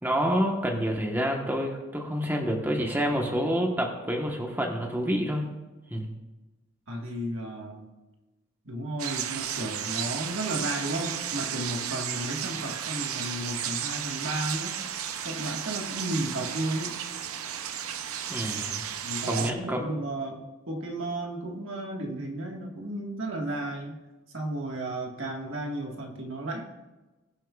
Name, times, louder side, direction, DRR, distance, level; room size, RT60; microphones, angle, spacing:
voice 1, 0.0-5.4 5.9-6.1 18.3-18.8 19.3-19.8, equal, 10° right, 0 dB, 1.2 m, -28 dB
voice 2, 6.9-7.9 8.6-14.8 15.2-17.0 19.0-24.0 24.3-26.7, right 1 dB, 60° right, 1 dB, 1.6 m, -33 dB
sound 1, 9.0-19.5, right 9 dB, 80° right, 0.6 m, -33 dB
21.0 x 7.4 x 2.4 m, 1.1 s
head